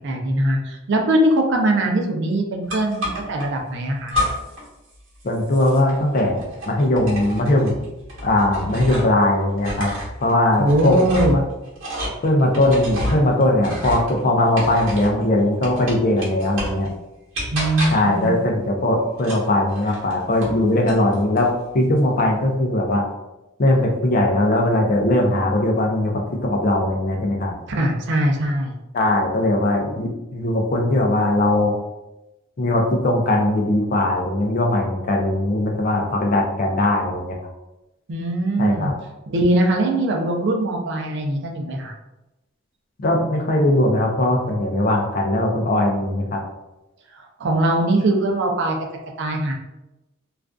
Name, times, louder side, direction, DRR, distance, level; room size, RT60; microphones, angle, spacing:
voice 1, 0.0-4.1 10.6-11.4 17.5-18.3 27.7-28.7 38.1-38.9 39.3-41.9 47.1-48.8 49.2-49.5, right 1 dB, 60° right, 1 dB, 0.5 m, -21 dB
sound 1, 2.7-3.5 4.1-4.7 4.9-9.2 9.5-15.2 15.6-16.9 17.3-18.2 19.2-20.6 20.9-21.5, equal, 75° right, 1.0 m, -30 dB
voice 2, 5.2-7.7 8.2-9.9 10.2-11.0 12.2-16.9 17.9-23.1 23.6-27.5 28.9-31.7 32.6-37.4 38.6-38.9 43.0-46.4, left 1 dB, 45° left, 1 dB, 0.4 m, -20 dB
2.4 x 2.4 x 2.2 m, 0.97 s
head